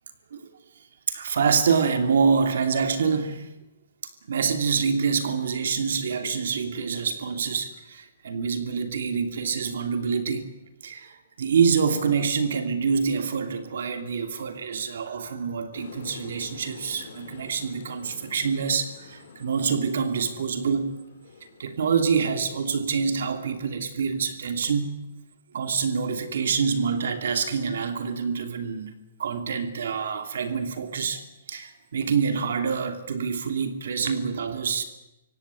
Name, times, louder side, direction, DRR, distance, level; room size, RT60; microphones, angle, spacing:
voice 1, 1.1-3.5 4.3-10.5 10.8-21.0 21.6-24.9 25.5-28.9 29.2-34.8, right 6 dB, 70° right, 7 dB, 2.9 m, -26 dB
sound 1, 15.7-21.7, left 5 dB, 55° left, 3.2 m, -47 dB
24.0 x 17.0 x 9.8 m, 0.99 s
hypercardioid pair, 180°, 0 cm